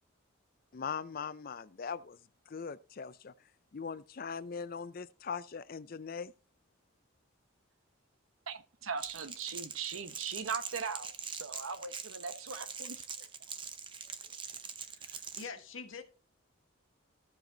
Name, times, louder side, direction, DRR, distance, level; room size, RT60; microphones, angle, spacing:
voice 1, 0.7-2.2 2.5-3.3 3.7-6.3, left 6 dB, 45° left, 0.5 m, -40 dB
voice 2, 8.5-13.3, right 5 dB, 80° right, 0.9 m, -40 dB
Crackle, 9.0-15.5, right 6 dB, 25° right, 0.6 m, -43 dB
voice 3, 14.6-16.0, left 5 dB, 75° left, 1.4 m, -46 dB
14.5 x 5.0 x 3.9 m
head